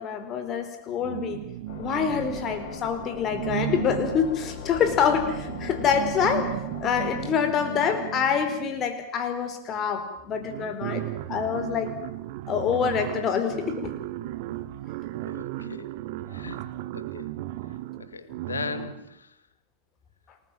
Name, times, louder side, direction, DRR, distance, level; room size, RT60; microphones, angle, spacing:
voice 1, 0.0-1.4 1.8-6.5 6.8-11.0 11.3-11.9 12.5-14.0, left 7 dB, 30° left, 8 dB, 4.6 m, -26 dB
sound 1, 1.0-2.8 3.3-8.9 9.9-10.0 10.2-19.1, right 15 dB, 50° right, 1.4 m, -35 dB
sound 2, 1.7-7.3, left 6 dB, 45° left, 5.4 m, -40 dB
voice 2, 15.3-15.9 16.3-16.6 16.9-17.3 18.0-19.3, left 5 dB, 75° left, 13 dB, 1.9 m, -37 dB
28.5 x 20.0 x 7.6 m, 0.81 s
figure-of-eight pair, 90°, 0 cm